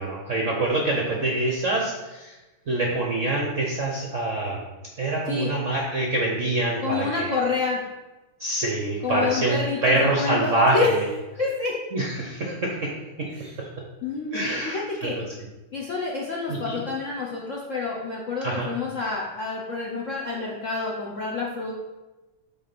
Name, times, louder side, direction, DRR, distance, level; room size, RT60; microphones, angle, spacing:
voice 1, 0.0-2.3 2.7-4.7 5.0-7.4 8.4-11.0 11.9-12.9 13.2-13.7 14.3-15.2 16.5-16.8 18.4-18.7, right 2 dB, 55° right, -1 dB, 0.8 m, -25 dB
voice 2, 6.8-7.8 9.0-10.9 11.4-11.8 13.3-13.5 14.0-15.2 15.7-21.7, left 4 dB, 60° left, -4 dB, 0.8 m, -28 dB
8.0 x 3.4 x 6.0 m, 1.1 s
omnidirectional pair, 2.4 m